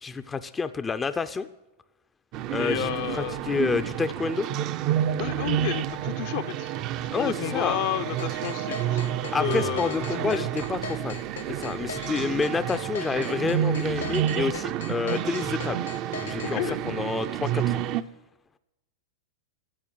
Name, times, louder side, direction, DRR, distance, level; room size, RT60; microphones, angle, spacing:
voice 1, 0.0-1.5 2.5-4.5 7.1-7.8 9.3-11.2 11.5-15.8 16.2-17.8, left 5 dB, 15° left, 11 dB, 0.5 m, -29 dB
sound 1, 2.3-18.0, right 11 dB, 45° right, 0.6 m, -29 dB
voice 2, 2.6-3.4 5.1-6.7 7.1-9.0 9.4-10.1 10.3-10.5 16.4-16.8, left 13 dB, 60° left, 10 dB, 0.8 m, -31 dB
sound 2, 8.2-16.5, left 5 dB, 85° left, 1.7 m, -38 dB
13.5 x 8.3 x 9.2 m, 0.98 s
hypercardioid pair, 110°, 0 cm